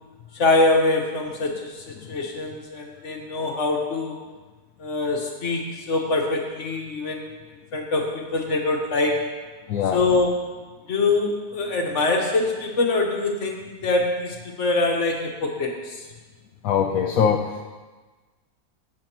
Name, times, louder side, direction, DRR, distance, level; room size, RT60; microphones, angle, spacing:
voice 1, 0.3-4.2 4.8-7.3 7.7-9.2 9.9-10.4 10.9-16.0, left 2 dB, 50° left, 1 dB, 1.6 m, -24 dB
voice 2, 9.7-10.0 16.6-17.6, left 7 dB, 65° left, 3 dB, 1.0 m, -22 dB
17.0 x 7.1 x 3.0 m, 1.3 s
omnidirectional pair, 1.6 m